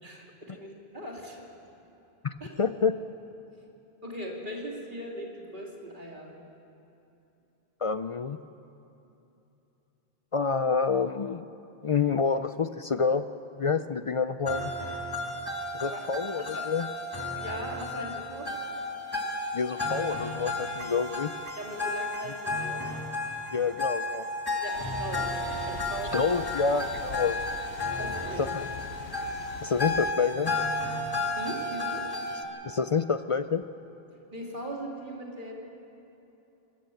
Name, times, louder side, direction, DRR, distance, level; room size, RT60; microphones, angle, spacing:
voice 1, 0.0-1.5 2.4-2.5 4.0-6.4 15.9-16.0 16.4-16.7 17.3-18.5 21.6-22.9 24.6-25.4 25.6-26.4 27.9-28.5 31.4-32.1 34.3-35.5, right 1 dB, 50° right, -1 dB, 3.1 m, -39 dB
voice 2, 2.2-2.9 7.8-8.4 10.3-11.5 11.8-13.3 13.6-14.7 15.7-16.9 19.5-21.3 23.5-24.3 26.1-27.4 28.4-28.7 29.6-30.5 32.6-33.6, left 5 dB, 45° left, 11 dB, 0.4 m, -28 dB
sound 1, 14.5-32.4, left 2 dB, 20° left, 2.2 m, -33 dB
sound 2, 24.7-30.1, left 6 dB, 80° left, 1.1 m, -43 dB
26.0 x 14.0 x 7.9 m, 2.9 s
omnidirectional pair, 1.1 m